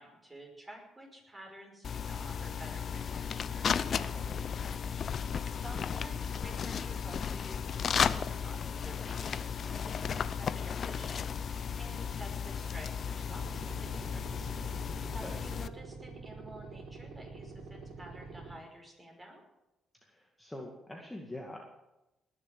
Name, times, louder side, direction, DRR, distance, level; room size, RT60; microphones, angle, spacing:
voice 1, 0.0-14.5 15.1-19.4, right 1 dB, 15° right, 0 dB, 5.5 m, -51 dB
sound 1, 1.8-15.7, left 7 dB, 55° left, 0.6 m, -34 dB
sound 2, 13.3-18.5, right 3 dB, 70° right, 3.7 m, -47 dB
voice 2, 15.0-15.3 20.0-21.6, left 1 dB, 10° left, 0 dB, 2.1 m, -45 dB
19.5 x 7.2 x 7.7 m, 0.98 s
cardioid pair, 90°, 0 cm